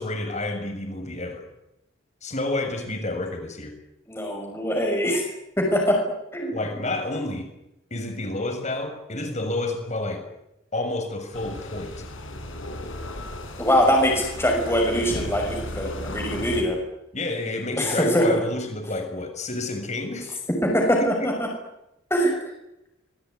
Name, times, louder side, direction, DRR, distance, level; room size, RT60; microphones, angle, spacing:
voice 1, 0.0-1.4 2.2-3.7 6.5-7.5 7.9-10.2 10.7-11.9 17.1-20.4 21.0-21.3, left 2 dB, 35° left, 5 dB, 6.8 m, -29 dB
voice 2, 4.1-5.2 5.6-6.0 6.3-6.6 13.6-16.8 17.8-18.4 20.6-21.5 22.1-22.3, equal, 15° left, 0 dB, 5.9 m, -22 dB
sound 1, 11.3-16.6, left 1 dB, 85° left, 6.5 m, -35 dB
27.5 x 21.0 x 9.6 m, 0.88 s
head